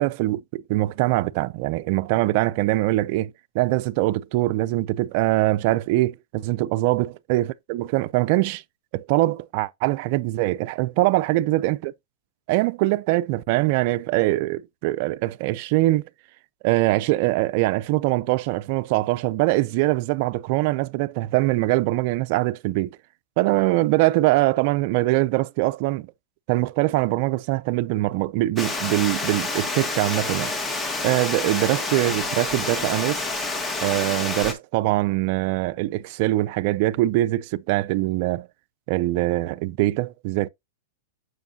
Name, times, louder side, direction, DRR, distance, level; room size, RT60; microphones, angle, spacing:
voice 1, 0.0-8.6 8.9-11.9 12.5-16.1 16.6-22.9 23.4-26.1 26.5-30.5 31.0-33.2 33.8-38.5 38.9-40.5, right 18 dB, 50° right, 0.4 m, -23 dB
Water, 28.6-34.5, left 3 dB, 15° left, 1.7 m, -28 dB
7.0 x 6.3 x 2.8 m
hypercardioid pair, 115°, 0 cm